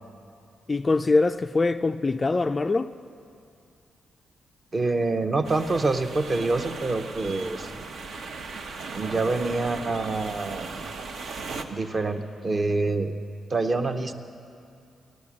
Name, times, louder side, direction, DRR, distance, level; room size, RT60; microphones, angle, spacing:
voice 1, 0.7-2.9, left 3 dB, 25° left, 0.3 m, -23 dB
voice 2, 4.7-7.7 8.9-10.7 11.7-13.1 13.5-14.1, right 3 dB, 30° right, 0.8 m, -26 dB
sound 1, 5.4-11.6, right 4 dB, 70° right, 1.0 m, -37 dB
15.5 x 11.5 x 7.5 m
cardioid pair, 130°, 0 cm